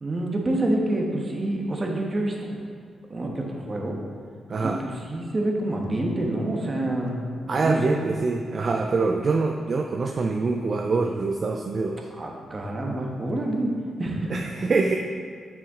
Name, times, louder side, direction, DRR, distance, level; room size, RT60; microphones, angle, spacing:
voice 1, 0.0-2.6 3.1-4.0 4.6-7.2 7.6-8.0 12.1-14.3, right 1 dB, 35° right, 0 dB, 1.2 m, -27 dB
voice 2, 4.5-4.8 7.5-12.1 14.3-15.0, right 3 dB, 50° right, 3 dB, 0.4 m, -25 dB
7.0 x 6.0 x 3.7 m, 2.2 s
cardioid pair, 80°, 0 cm